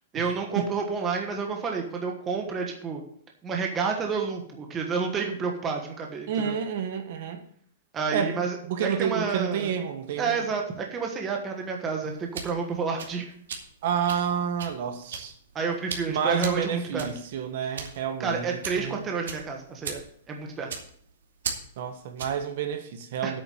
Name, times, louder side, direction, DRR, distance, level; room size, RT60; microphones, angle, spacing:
voice 1, 0.1-3.0 3.4-6.6 7.9-8.6 9.0-9.7 10.2-13.3 15.5-17.1 18.2-20.0 20.3-20.7 23.2-23.3, right 5 dB, 15° right, 2 dB, 1.3 m, -30 dB
voice 2, 6.3-7.4 8.1-10.5 13.8-15.3 16.1-19.0 21.8-23.4, right 7 dB, 45° right, 7 dB, 1.2 m, -29 dB
sound 1, 12.0-22.5, right 6 dB, 90° right, 2.5 m, -39 dB
8.7 x 6.7 x 8.5 m, 0.62 s
supercardioid pair, 180°, 0 cm